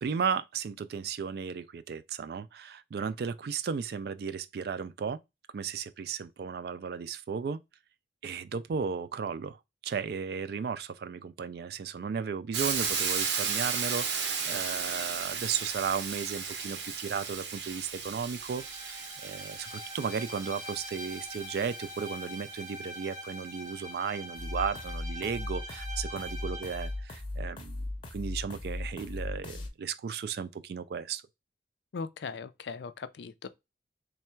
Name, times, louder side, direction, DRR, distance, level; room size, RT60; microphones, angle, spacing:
voice 1, 0.0-5.2 5.5-7.6 8.2-27.8 28.1-31.2, right 6 dB, 60° right, 0.3 m, -35 dB
Hiss, 12.5-22.4, right 6 dB, 75° right, 0.7 m, -35 dB
Bowed string instrument, 18.3-27.0, equal, 15° right, 0.7 m, -44 dB
sound 1, 24.3-29.7, left 2 dB, 30° left, 0.6 m, -37 dB
voice 2, 31.9-33.5, left 5 dB, 75° left, 0.4 m, -39 dB
3.3 x 2.3 x 4.3 m
head